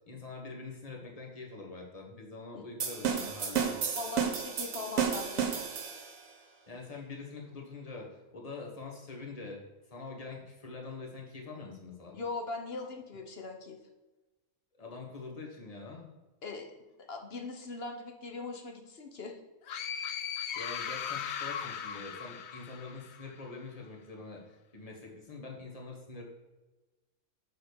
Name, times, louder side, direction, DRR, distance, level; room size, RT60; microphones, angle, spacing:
voice 1, 0.0-3.8 6.7-12.2 14.8-16.1 20.5-26.2, left 3 dB, 25° left, 0 dB, 1.4 m, -45 dB
sound 1, 2.8-6.2, right 7 dB, 65° right, 1.4 m, -32 dB
voice 2, 3.9-5.5 12.1-13.8 16.4-16.7 17.1-19.4, left 3 dB, 45° left, 3 dB, 1.1 m, -40 dB
sound 2, 19.7-23.3, left 8 dB, 60° left, 0.7 m, -38 dB
6.2 x 4.7 x 6.6 m, 1.1 s
omnidirectional pair, 1.6 m